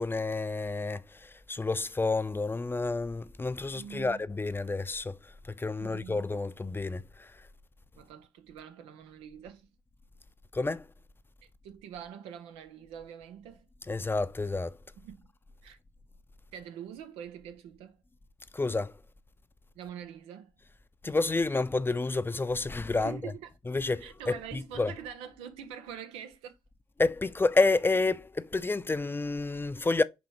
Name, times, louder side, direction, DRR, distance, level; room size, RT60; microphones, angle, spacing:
voice 1, 0.0-7.3 10.5-10.9 13.9-14.8 18.5-18.9 21.0-23.2 23.7-24.9 27.0-30.0, left 3 dB, 20° left, 0.5 m, -29 dB
voice 2, 3.7-4.2 5.8-6.2 7.9-9.7 11.4-13.7 15.0-15.3 15.6-15.8 16.5-18.0 19.7-20.5 23.0-23.5 24.0-26.6, right 9 dB, 90° right, 0.6 m, -44 dB
5.3 x 3.1 x 3.0 m
hypercardioid pair, 40°, 10 cm